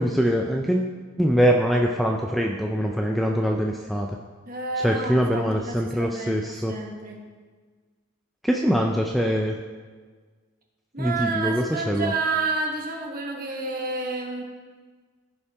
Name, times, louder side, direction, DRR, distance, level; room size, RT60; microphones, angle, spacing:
voice 1, 0.0-4.1 4.8-6.7 8.5-9.5 11.0-12.1, equal, ahead, 1 dB, 0.3 m, -23 dB
voice 2, 4.5-7.2 10.9-14.4, right 3 dB, 40° right, 1 dB, 1.2 m, -30 dB
15.5 x 5.6 x 3.4 m, 1.5 s
head